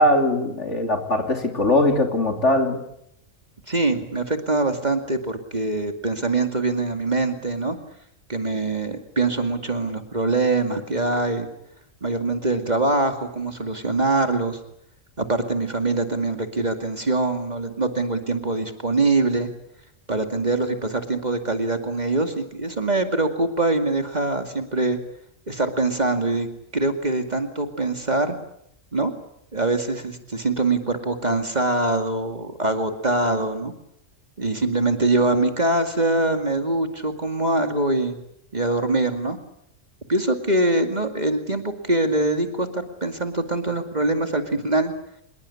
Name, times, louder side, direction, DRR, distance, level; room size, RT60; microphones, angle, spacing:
voice 1, 0.0-2.8, left 1 dB, 65° left, 5 dB, 3.5 m, -20 dB
voice 2, 3.7-7.8 8.3-11.5 12.0-14.6 15.2-19.5 20.1-25.0 25.5-26.5 26.7-28.4 28.9-29.1 29.5-33.7 34.4-38.2 38.5-39.4 40.1-44.9, right 2 dB, 35° right, 6 dB, 2.4 m, -23 dB
26.0 x 21.5 x 8.5 m, 0.73 s
omnidirectional pair, 1.3 m